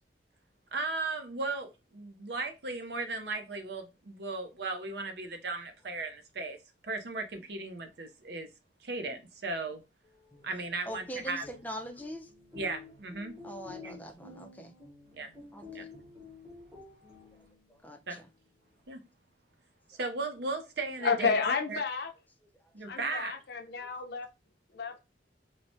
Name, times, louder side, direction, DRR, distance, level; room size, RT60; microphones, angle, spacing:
voice 1, 0.7-6.6 6.8-8.5 8.8-9.8 10.4-11.4 12.5-13.5 13.8-13.9 15.1-15.3 15.7-15.8 18.1-18.2 18.9-19.0 19.9-21.3 21.7-21.8 22.7-23.3, right 3 dB, 65° right, 0.6 m, -36 dB
sound 1, 10.1-17.8, left 4 dB, 10° right, 0.8 m, -51 dB
voice 2, 10.9-12.3 13.4-14.7 15.5-15.9 17.8-18.3 23.6-23.9, equal, 10° left, 0.4 m, -42 dB
voice 3, 21.0-22.1 22.9-24.3 24.7-25.0, left 5 dB, 65° left, 0.5 m, -31 dB
3.1 x 2.1 x 2.6 m
head